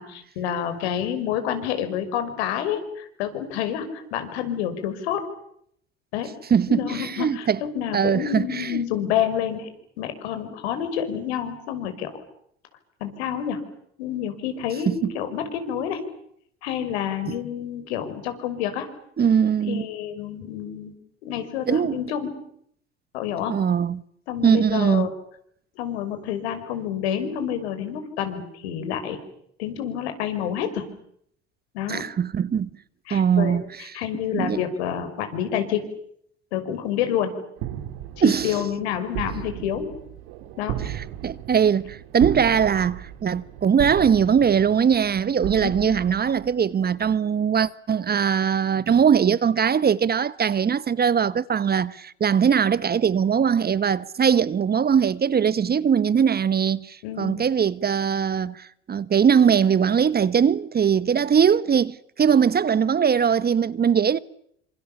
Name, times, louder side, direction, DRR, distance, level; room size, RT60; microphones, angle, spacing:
voice 1, 0.0-5.3 6.1-6.3 6.7-9.7 10.0-12.1 13.0-13.6 14.0-16.0 16.6-18.9 19.7-20.9 21.2-22.4 23.1-23.6 24.3-25.1 25.8-29.2 29.6-30.9 31.7-32.1 33.1-35.9 36.5-37.4 38.2-39.9 40.6-40.8 45.6-45.9 57.0-57.5, left 9 dB, 75° left, 5.8 m, -28 dB
voice 2, 6.5-7.6 7.9-8.8 14.9-15.1 19.2-19.8 21.7-22.0 23.5-24.0 24.4-25.1 31.9-32.7 33.1-33.6 34.3-34.6 38.2-38.5 40.9-64.2, right 7 dB, 30° right, 1.1 m, -21 dB
sound 1, 37.6-46.9, right 11 dB, 65° right, 3.2 m, -35 dB
28.5 x 26.5 x 7.2 m
hypercardioid pair, 70°, 33 cm